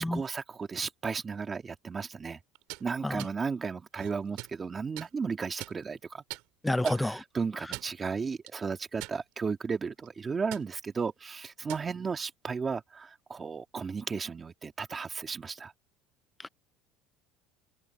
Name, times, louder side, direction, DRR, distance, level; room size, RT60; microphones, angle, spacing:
voice 1, 0.0-2.4 2.8-6.2 6.8-15.7, right 5 dB, 20° right, 2.1 m, -34 dB
sound 1, 2.5-2.8 3.2-3.3 3.9-4.6 5.0-5.1 5.6-6.0 6.3-6.4 6.8-7.0 7.6-8.0 8.5-8.6 9.0-9.5 9.9-10.1 10.5-10.7 11.5-11.9, right 23 dB, 70° right, 3.8 m, -42 dB
voice 2, 6.6-7.1 16.4-16.5, left 1 dB, 5° left, 0.5 m, -29 dB
cardioid pair, 135°, 0 cm